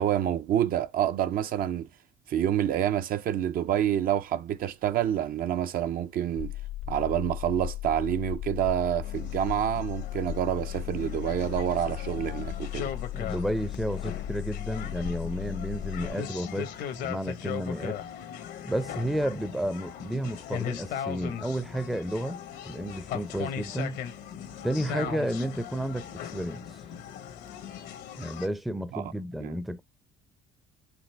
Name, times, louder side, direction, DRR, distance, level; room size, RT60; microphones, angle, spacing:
voice 1, 0.0-1.9 2.3-6.5 6.9-12.9 25.0-25.1 28.9-29.1 29.4-29.6, right 10 dB, 60° right, 0.5 m, -28 dB
sound 1, 6.4-16.1, left 13 dB, 65° left, 0.5 m, -36 dB
sound 2, 9.0-28.5, left 9 dB, 85° left, 1.1 m, -39 dB
voice 2, 12.9-18.0 18.6-22.4 22.7-24.0 24.6-26.7 28.2-29.8, right 1 dB, ahead, 0.5 m, -32 dB
5.2 x 2.9 x 3.2 m
cardioid pair, 110°, 17 cm